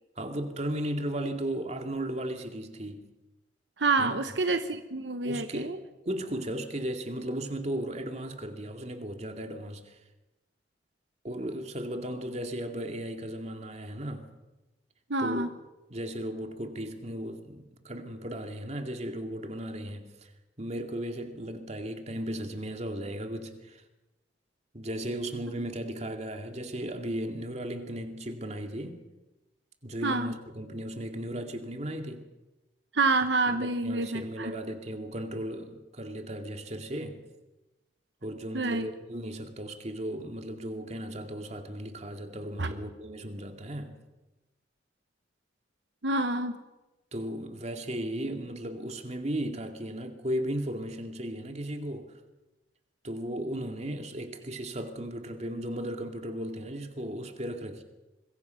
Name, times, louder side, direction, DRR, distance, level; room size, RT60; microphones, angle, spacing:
voice 1, 0.2-3.0 4.0-4.2 5.2-5.8 6.0-10.0 11.2-14.3 15.2-15.5 15.9-20.3 20.6-23.8 24.7-29.0 29.8-32.2 33.5-37.2 38.2-44.1 47.1-52.1 53.0-57.8, right 1 dB, 40° right, 2.3 m, -36 dB
voice 2, 3.8-5.8 15.1-15.5 30.0-30.3 32.9-34.5 38.5-38.9 42.6-42.7 46.0-46.6, right 3 dB, 80° right, 1.1 m, -28 dB
25.0 x 22.0 x 5.8 m
head